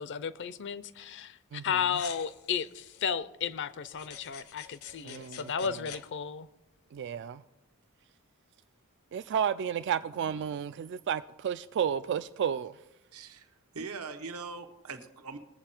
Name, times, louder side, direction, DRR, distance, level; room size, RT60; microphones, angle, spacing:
voice 1, 0.0-6.5, left 7 dB, 55° left, 0.5 m, -34 dB
sound 1, 1.9-3.0 3.9-6.0, left 8 dB, 75° left, 0.9 m, -47 dB
voice 2, 5.0-5.5 6.9-7.4 9.1-12.7, right 8 dB, 55° right, 0.3 m, -32 dB
voice 3, 13.1-15.4, right 4 dB, 80° right, 1.1 m, -42 dB
20.0 x 7.5 x 4.4 m
head